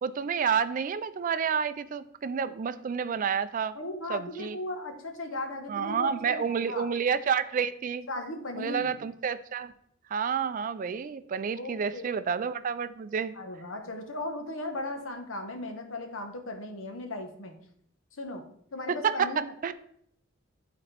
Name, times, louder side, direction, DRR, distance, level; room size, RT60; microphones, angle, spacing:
voice 1, 0.0-3.8 4.1-4.6 5.7-8.1 8.5-9.7 10.1-13.4 18.9-19.3 19.6-19.7, right 6 dB, 40° right, 13 dB, 0.3 m, -29 dB
voice 2, 3.7-6.9 8.1-8.9 11.6-12.1 13.3-17.5 18.2-18.4 18.7-19.4, left 2 dB, 75° left, 5 dB, 1.1 m, -37 dB
11.0 x 4.2 x 3.3 m, 0.69 s
head